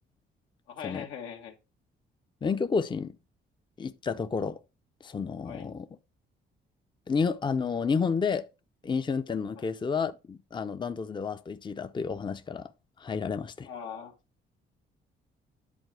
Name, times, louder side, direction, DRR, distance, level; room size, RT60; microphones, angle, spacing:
voice 1, 0.7-1.5 5.5-5.7 9.6-9.7 13.7-14.1, left 8 dB, 90° left, 1.8 m, -40 dB
voice 2, 2.4-3.2 3.8-4.6 5.0-5.9 7.1-8.5 8.8-12.7 13.0-13.7, left 5 dB, 25° left, 0.6 m, -30 dB
10.5 x 4.0 x 4.7 m
cardioid pair, 90°, 20 cm